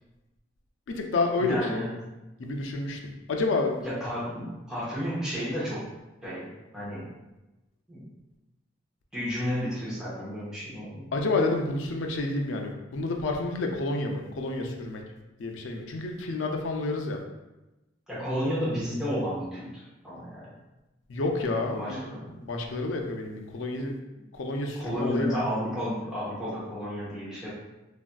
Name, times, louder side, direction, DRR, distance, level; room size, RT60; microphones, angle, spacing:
voice 1, 0.9-1.8 2.4-3.8 11.1-15.0 15.4-17.2 21.1-22.0 22.4-23.9 24.3-25.4, left 2 dB, 80° left, 2 dB, 0.4 m, -29 dB
voice 2, 1.4-1.9 3.8-5.8 6.2-7.1 7.9-8.1 9.1-11.1 18.1-20.5 21.7-22.4 24.2-24.3 24.8-27.5, equal, 5° right, -10 dB, 0.9 m, -32 dB
3.1 x 2.6 x 2.2 m, 1.0 s
head